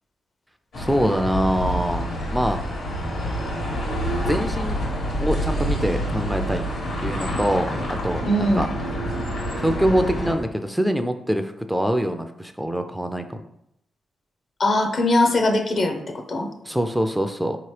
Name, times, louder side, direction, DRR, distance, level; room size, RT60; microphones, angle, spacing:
sound 1, 0.7-10.3, equal, 75° left, 1.3 m, -27 dB
voice 1, 0.8-2.0 2.3-2.6 4.2-4.8 5.2-6.6 7.0-7.7 8.0-8.7 9.6-13.4 16.7-17.6, equal, 5° right, 7 dB, 0.3 m, -24 dB
voice 2, 8.3-8.6 14.6-16.5, left 1 dB, 55° left, 4 dB, 0.7 m, -21 dB
4.2 x 2.9 x 3.2 m, 0.78 s
supercardioid pair, 55°, 0 cm